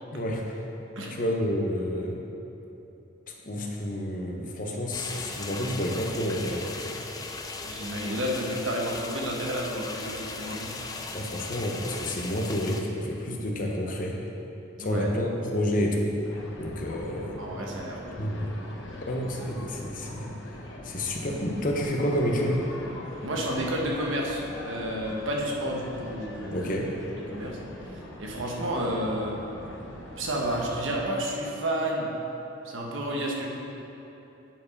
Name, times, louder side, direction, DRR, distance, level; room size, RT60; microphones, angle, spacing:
voice 1, 0.1-0.5 1.2-2.2 3.4-6.9 11.1-14.2 14.8-16.2 16.6-17.4 18.2-18.6 19.1-20.4 20.8-22.6 26.5-26.9, equal, 40° left, 0 dB, 0.9 m, -29 dB
sound 1, 4.9-12.8, left 3 dB, 20° left, 0.4 m, -38 dB
voice 2, 7.6-10.7 14.8-15.1 17.4-18.2 23.2-26.7 27.1-27.6 27.8-29.3 30.2-32.1 32.6-33.5, right 1 dB, 80° right, -1 dB, 1.2 m, -31 dB
sound 2, 16.2-31.0, left 1 dB, 70° left, 0.9 m, -43 dB
9.0 x 4.7 x 5.3 m, 3.0 s
head